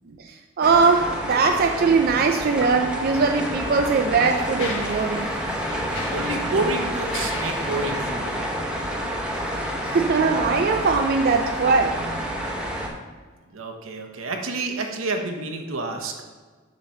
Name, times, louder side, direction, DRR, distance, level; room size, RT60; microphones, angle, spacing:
voice 1, 0.3-5.3 9.8-12.0, right 4 dB, 50° right, 4 dB, 0.4 m, -21 dB
sound 1, 0.6-12.9, equal, 5° right, 0.7 m, -29 dB
Mechanisms, 2.9-3.1 3.8-9.6, left 2 dB, 65° left, 1.1 m, -38 dB
voice 2, 6.1-8.4 13.5-16.3, right 2 dB, 85° right, 3 dB, 0.8 m, -29 dB
7.2 x 3.0 x 5.5 m, 1.4 s
head